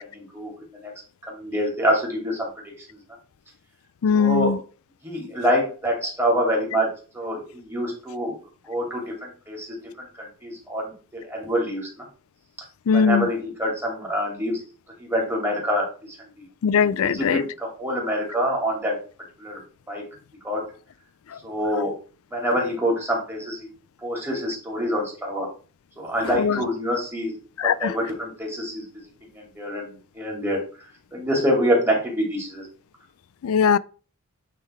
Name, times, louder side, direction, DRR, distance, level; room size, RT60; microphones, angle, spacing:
voice 1, 0.1-0.5 0.8-0.9 1.3-2.5 4.1-4.6 5.0-6.9 7.1-8.3 8.7-9.7 10.2-11.9 12.9-14.6 15.0-15.8 17.0-19.0 19.4-19.6 19.9-20.0 20.4-20.7 21.4-21.9 22.3-23.7 24.0-25.5 26.0-27.3 27.8-28.8 29.3-30.6 31.1-32.6, equal, 10° right, 2.5 m, -26 dB
voice 2, 4.0-4.6 12.9-13.3 16.6-17.4 21.7-21.8 26.2-26.6 27.6-28.0 33.4-33.8, left 6 dB, 85° left, 0.4 m, -20 dB
9.0 x 3.8 x 4.3 m
head